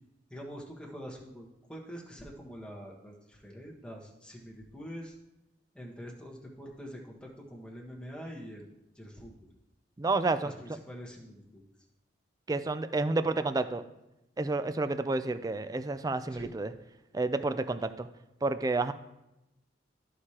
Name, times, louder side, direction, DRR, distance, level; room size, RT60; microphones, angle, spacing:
voice 1, 0.3-5.2 5.7-8.7 8.9-9.3 10.4-11.6 16.3-16.5, equal, 5° left, -2 dB, 1.2 m, -45 dB
voice 2, 10.0-10.5 12.5-13.8 14.4-16.7 17.1-18.1 18.4-18.9, right 3 dB, 20° right, 11 dB, 0.3 m, -30 dB
13.0 x 4.7 x 2.9 m, 0.93 s
head